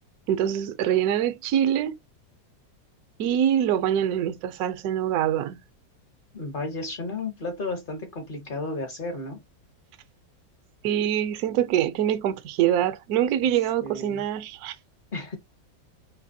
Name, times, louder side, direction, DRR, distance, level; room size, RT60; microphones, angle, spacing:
voice 1, 0.3-2.0 3.2-5.6 10.8-14.8, right 10 dB, 70° right, 0.9 m, -24 dB
voice 2, 6.3-9.4 13.8-14.2 15.1-15.4, left 2 dB, 45° left, 0.7 m, -33 dB
3.3 x 2.7 x 2.6 m
omnidirectional pair, 1.9 m